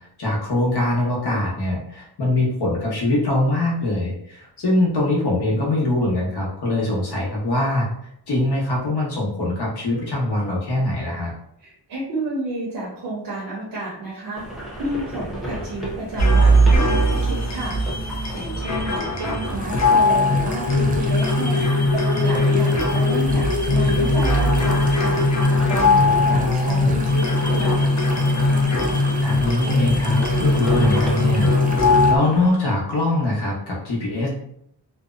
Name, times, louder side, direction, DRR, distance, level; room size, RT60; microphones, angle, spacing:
voice 1, 0.2-7.9 8.3-11.3 19.2-19.4 26.0-26.9 29.2-31.5 31.9-34.3, left 2 dB, 70° left, -4 dB, 1.0 m, -23 dB
voice 2, 11.6-14.4 14.8-17.8 18.3-21.7 21.9-27.2 27.5-28.0, right 2 dB, 70° right, -5 dB, 0.8 m, -31 dB
sound 1, 14.4-32.5, right 1 dB, ahead, 0.7 m, -35 dB
sound 2, 16.2-32.2, left 1 dB, 40° left, 0.5 m, -19 dB
sound 3, 19.4-32.1, right 2 dB, 20° right, 0.3 m, -37 dB
2.7 x 2.0 x 2.4 m, 0.73 s
wide cardioid pair, 95°, 42 cm